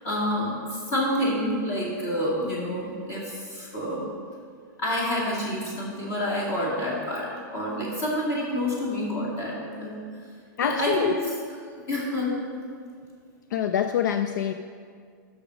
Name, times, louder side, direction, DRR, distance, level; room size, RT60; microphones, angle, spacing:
voice 1, 0.0-4.0 4.8-9.9 10.6-11.4 11.9-12.4, left 1 dB, 25° left, -4 dB, 2.2 m, -28 dB
voice 2, 10.6-11.1 13.5-14.5, left 9 dB, 60° left, 8 dB, 0.4 m, -25 dB
6.9 x 6.1 x 6.2 m, 2.1 s
supercardioid pair, 170°, 11 cm